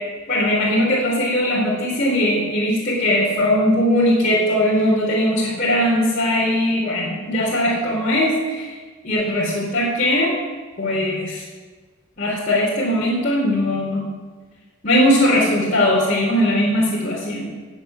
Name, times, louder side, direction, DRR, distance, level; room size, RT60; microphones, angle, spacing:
voice 1, 0.3-8.8 9.0-10.3 10.8-11.4 12.2-14.1 14.8-17.5, left 1 dB, 40° left, -7 dB, 3.9 m, -19 dB
15.0 x 9.3 x 8.7 m, 1.4 s
head